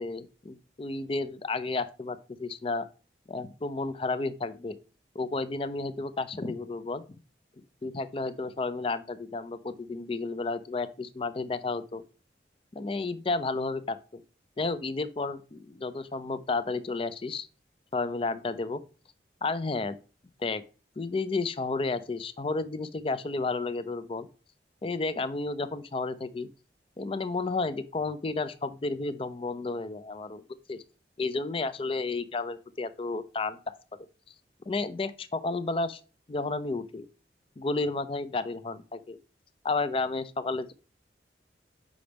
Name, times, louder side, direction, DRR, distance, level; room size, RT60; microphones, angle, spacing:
voice 1, 0.0-2.9 3.3-4.8 5.2-7.0 7.8-12.0 12.7-14.2 14.6-17.5 17.9-18.8 19.4-20.0 20.4-20.6 21.0-24.3 24.8-26.5 27.0-30.4 30.7-30.8 31.2-33.6 34.7-36.0 36.3-37.1 37.6-39.2 39.6-40.7, left 3 dB, 30° left, 0.4 m, -32 dB
6.9 x 5.1 x 3.4 m
head